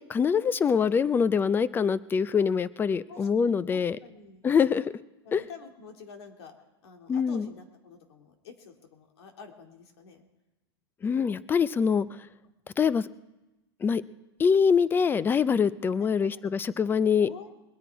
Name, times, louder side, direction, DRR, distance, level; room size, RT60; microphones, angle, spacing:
voice 1, 0.0-4.0 4.4-4.8 5.3-5.4 7.1-7.5 11.0-12.1 12.8-13.1 13.8-14.0 14.4-17.3, left 6 dB, 15° left, 18 dB, 0.4 m, -24 dB
voice 2, 3.1-4.5 5.2-6.5 6.8-10.3 16.0-16.4 17.2-17.5, left 5 dB, 70° left, 4 dB, 2.5 m, -48 dB
21.5 x 10.0 x 4.6 m, 1.0 s
hypercardioid pair, 125°, 14 cm